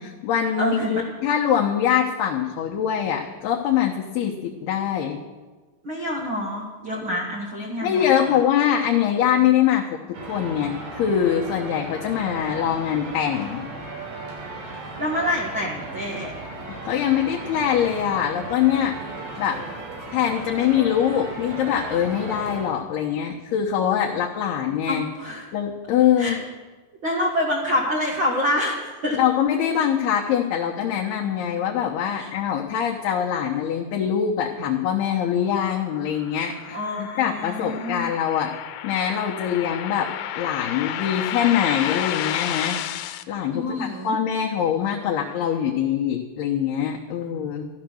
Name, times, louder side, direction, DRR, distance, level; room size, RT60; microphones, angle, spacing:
voice 1, 0.0-5.2 7.8-13.7 16.8-19.0 19.4-19.6 20.1-25.1 25.5-26.4 29.2-38.5 38.8-40.1 40.4-47.7, left 9 dB, 70° left, -1 dB, 2.7 m, -23 dB
voice 2, 0.6-1.0 5.8-8.4 15.0-16.3 24.9-25.4 26.2-26.4 27.0-29.2 32.1-32.3 36.7-38.1 43.5-44.2, left 1 dB, 50° right, -2 dB, 1.4 m, -27 dB
sound 1, 10.1-22.6, right 2 dB, 75° right, 5.8 m, -36 dB
sound 2, 35.4-43.2, left 12 dB, 90° left, 3.1 m, -31 dB
14.0 x 13.5 x 6.3 m, 1.3 s
omnidirectional pair, 5.3 m